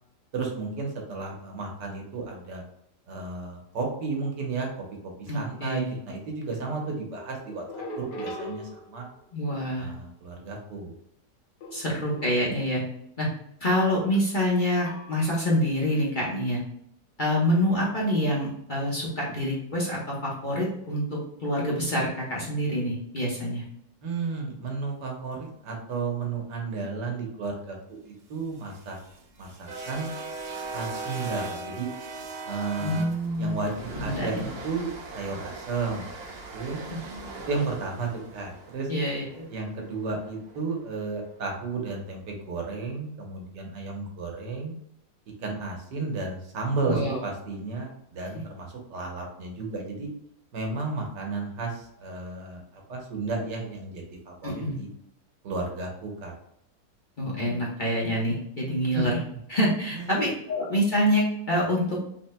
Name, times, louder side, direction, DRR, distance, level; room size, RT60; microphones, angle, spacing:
voice 1, 0.3-2.6 3.1-4.7 5.0-7.6 8.0-9.1 9.8-11.0 24.0-29.0 29.4-30.1 30.7-31.9 32.4-33.1 33.4-34.9 35.1-36.1 36.5-36.8 37.5-38.9 39.5-44.7 45.4-50.1 50.5-54.9 55.4-56.3 58.9-59.1 59.9-60.1, right 4 dB, 80° right, 1 dB, 1.7 m, -33 dB
voice 2, 5.3-6.0 9.3-9.9 11.7-12.8 13.2-13.3 13.6-16.6 17.2-23.6 32.8-33.7 33.9-34.5 38.9-39.4 46.9-47.2 54.4-54.8 57.2-59.2 59.5-62.0, equal, 35° left, -5 dB, 1.1 m, -26 dB
sound 1, 7.1-9.3 11.6-12.9 14.9-15.5 16.0-16.2, left 1 dB, 75° left, 1.6 m, -41 dB
sound 2, 28.4-40.6, right 3 dB, 55° right, 0.7 m, -39 dB
5.7 x 4.0 x 2.2 m, 0.75 s
omnidirectional pair, 1.9 m